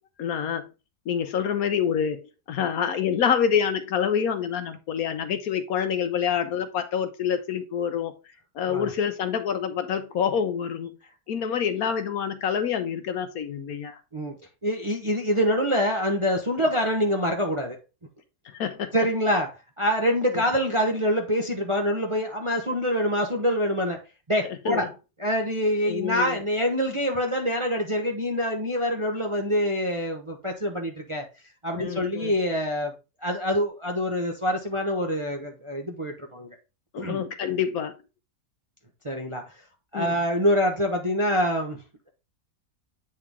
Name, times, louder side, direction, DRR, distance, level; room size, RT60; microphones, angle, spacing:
voice 1, 0.2-0.7 1.1-2.2 2.5-8.1 8.5-11.0 11.3-14.0 18.4-18.9 20.3-20.4 24.6-24.9 25.9-26.4 31.8-32.3 36.9-37.9 39.9-40.2, left 8 dB, 65° left, 1.2 m, -27 dB
voice 2, 14.6-17.8 18.9-19.5 19.8-24.0 24.3-24.9 25.2-31.2 31.6-32.9 33.2-36.5 37.0-37.2 39.0-39.4 39.9-41.8, equal, 25° right, 0.7 m, -25 dB
8.6 x 3.8 x 3.6 m
omnidirectional pair, 1.7 m